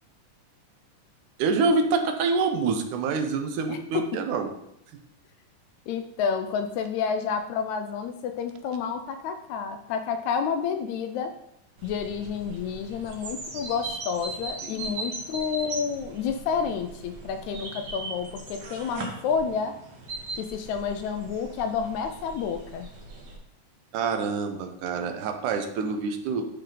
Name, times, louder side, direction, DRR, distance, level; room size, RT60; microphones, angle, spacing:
voice 1, 1.4-4.5 14.6-15.0 23.9-26.5, right 4 dB, 80° right, 5 dB, 2.2 m, -26 dB
voice 2, 3.7-4.2 5.9-11.3 11.8-19.8 20.3-22.9, left 6 dB, 80° left, 7 dB, 1.8 m, -30 dB
sound 1, 11.8-23.4, right 2 dB, 55° right, 1.2 m, -39 dB
11.0 x 4.5 x 3.8 m, 0.79 s
omnidirectional pair, 3.6 m